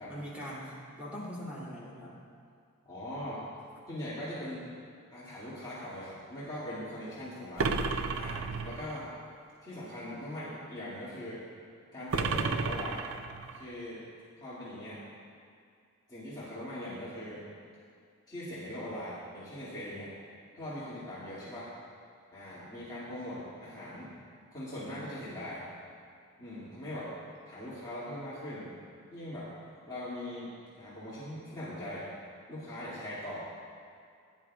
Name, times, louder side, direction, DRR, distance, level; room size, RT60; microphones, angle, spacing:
voice 1, 0.1-2.2, equal, 5° right, -8 dB, 3.0 m, -42 dB
voice 2, 2.8-3.4 3.9-4.7 5.1-7.8 8.2-9.1 9.6-11.4 11.9-13.1 13.5-14.0 14.4-15.0 16.1-17.4 18.3-20.1 20.5-21.7 22.3-24.1 24.5-25.6 26.4-27.1 27.5-28.7 29.1-29.5 29.9-30.5 30.8-32.1 32.5-33.4, left 1 dB, 20° left, -11 dB, 2.3 m, -40 dB
sound 1, 7.6-9.0 12.1-13.6, right 4 dB, 60° right, 0.5 m, -32 dB
16.0 x 10.5 x 2.4 m, 2.3 s
head